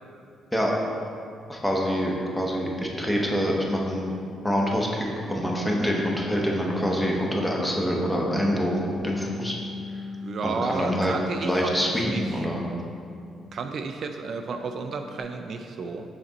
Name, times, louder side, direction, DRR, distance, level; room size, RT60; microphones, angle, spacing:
voice 1, 1.5-4.2 4.4-9.6 9.9-10.1 10.4-11.1 11.4-12.6, equal, 10° left, -2 dB, 1.0 m, -26 dB
Bass guitar, 9.0-13.7 14.0-15.2, left 3 dB, 80° right, 0.7 m, -40 dB
voice 2, 10.2-12.5 13.5-16.1, right 4 dB, 55° right, 5 dB, 0.3 m, -32 dB
5.8 x 4.1 x 4.0 m, 2.4 s
cardioid pair, 90°, 0 cm